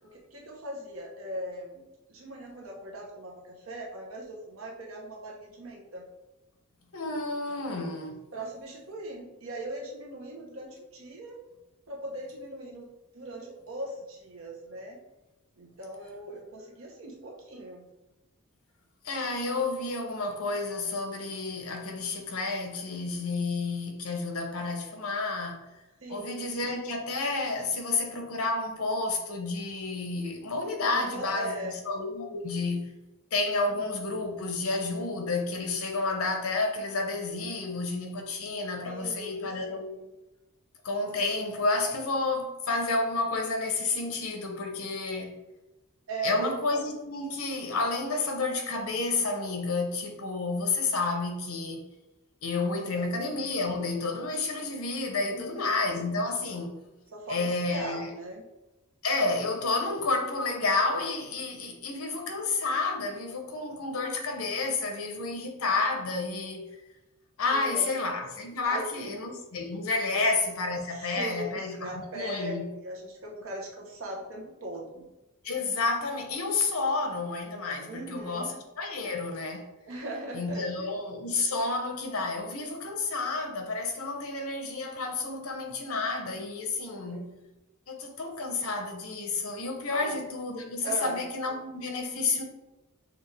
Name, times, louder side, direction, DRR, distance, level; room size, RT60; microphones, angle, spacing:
voice 1, 0.0-6.0 7.5-7.6 8.3-11.4 11.9-12.9 13.1-15.0 15.6-17.8 26.0-26.5 30.9-31.8 33.7-33.8 38.8-40.1 46.1-46.5 52.9-53.1 55.3-55.8 57.1-58.5 67.5-67.9 68.6-69.1 70.1-70.2 70.9-75.1 77.8-78.5 79.8-80.6 86.8-87.3 89.9-90.2 90.8-91.2, right 1 dB, 70° right, 1.0 m, -39 dB
voice 2, 6.9-8.2 19.0-25.6 26.1-32.9 33.3-39.9 40.8-45.3 46.2-51.8 52.4-56.8 57.3-58.1 59.0-66.7 67.4-72.7 75.4-78.5 78.8-79.7 80.3-87.3 87.9-92.4, left 3 dB, 80° left, 0.8 m, -30 dB
5.9 x 2.5 x 3.3 m
head